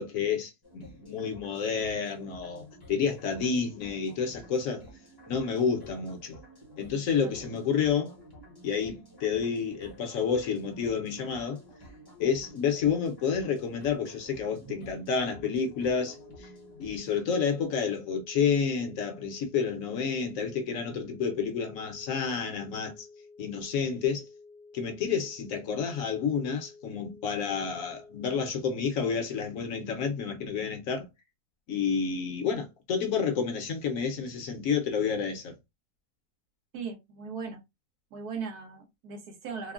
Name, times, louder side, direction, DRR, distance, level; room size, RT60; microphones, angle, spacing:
voice 1, 0.0-4.8 5.3-6.4 6.8-8.1 8.6-11.6 12.2-16.5 16.8-23.1 23.4-24.3 24.7-31.1 31.7-35.5, left 6 dB, 65° left, 1.0 m, -30 dB
sound 1, 0.6-17.2, equal, 20° left, 0.7 m, -51 dB
sound 2, 15.2-28.5, left 4 dB, 50° right, 0.9 m, -52 dB
voice 2, 36.7-37.6 38.1-39.7, right 5 dB, 75° right, 1.4 m, -38 dB
3.5 x 2.0 x 2.3 m
omnidirectional pair, 1.7 m